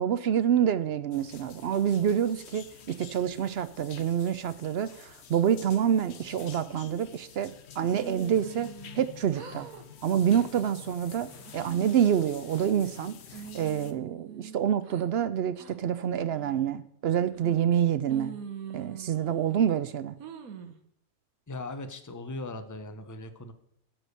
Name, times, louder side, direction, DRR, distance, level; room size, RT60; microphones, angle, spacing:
voice 1, 0.0-8.7 8.9-9.7 10.0-18.3 18.7-20.2, right 9 dB, 65° right, 14 dB, 0.7 m, -27 dB
sound 1, 1.1-13.9, left 8 dB, 55° left, 1.0 m, -49 dB
sound 2, 7.9-9.1 9.3-9.8 10.2-10.6 11.1-11.7 12.2-12.9 13.3-15.1 15.6-15.7 16.3-16.7 17.3-17.8 18.1-19.7 20.2-20.8, right 7 dB, 90° right, 1.4 m, -44 dB
voice 2, 21.5-23.5, left 2 dB, 20° left, 9 dB, 0.6 m, -39 dB
13.0 x 4.9 x 6.6 m, 0.73 s
omnidirectional pair, 1.4 m